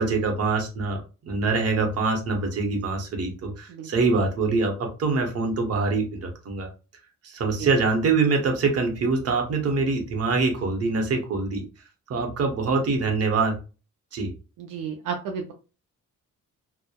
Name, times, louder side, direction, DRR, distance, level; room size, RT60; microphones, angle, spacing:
voice 1, 0.0-6.7 7.2-11.6 12.1-13.6 14.1-14.3, right 4 dB, 50° right, 3 dB, 0.8 m, -24 dB
voice 2, 14.6-15.5, right 6 dB, 75° right, 3 dB, 0.5 m, -32 dB
2.7 x 2.1 x 2.2 m, 0.33 s
cardioid pair, 110°, 32 cm